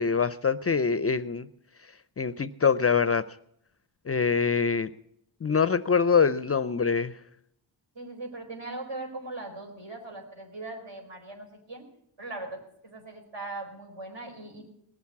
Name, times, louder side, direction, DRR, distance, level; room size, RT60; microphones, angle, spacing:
voice 1, 0.0-1.5 2.2-3.2 4.1-4.9 5.4-7.1, left 5 dB, 30° left, 15 dB, 0.5 m, -24 dB
voice 2, 7.9-11.8 12.2-14.6, right 2 dB, 65° right, 2 dB, 4.5 m, -40 dB
19.0 x 7.2 x 8.3 m, 0.74 s
cardioid pair, 90°, 47 cm